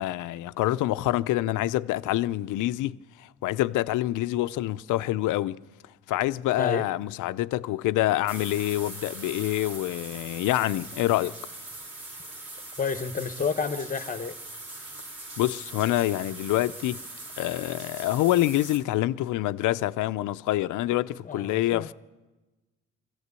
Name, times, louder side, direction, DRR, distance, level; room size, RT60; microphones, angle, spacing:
voice 1, 0.0-5.6 6.1-11.4 15.4-17.0 17.4-21.9, left 15 dB, 85° left, 0.6 m, -26 dB
sound 1, 8.3-18.8, right 2 dB, 85° right, 4.8 m, -41 dB
voice 2, 12.8-14.4 21.2-21.9, left 5 dB, 25° left, 1.1 m, -30 dB
22.5 x 15.0 x 8.2 m
cardioid pair, 90°, 30 cm